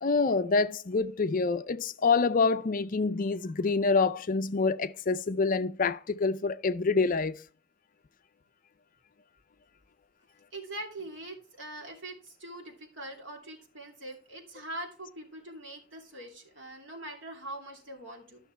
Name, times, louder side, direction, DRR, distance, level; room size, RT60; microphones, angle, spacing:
voice 1, 0.0-7.4, left 4 dB, 40° left, 0.5 m, -26 dB
voice 2, 10.5-18.4, right 1 dB, 65° right, 2.9 m, -43 dB
12.5 x 6.3 x 4.6 m
head